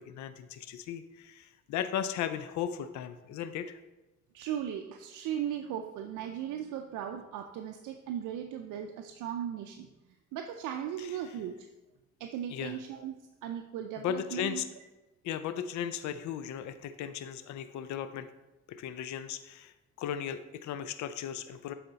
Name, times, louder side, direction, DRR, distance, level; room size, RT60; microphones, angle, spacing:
voice 1, 0.0-3.8 11.0-11.1 12.5-12.8 14.0-14.7 15.2-18.3 18.7-21.7, left 9 dB, 70° left, 11 dB, 0.5 m, -36 dB
voice 2, 4.3-9.9 10.3-11.7 12.2-13.2 13.4-14.6, right 9 dB, 85° right, 4 dB, 0.5 m, -37 dB
7.7 x 4.2 x 4.0 m, 1.1 s
cardioid pair, 90°, 30 cm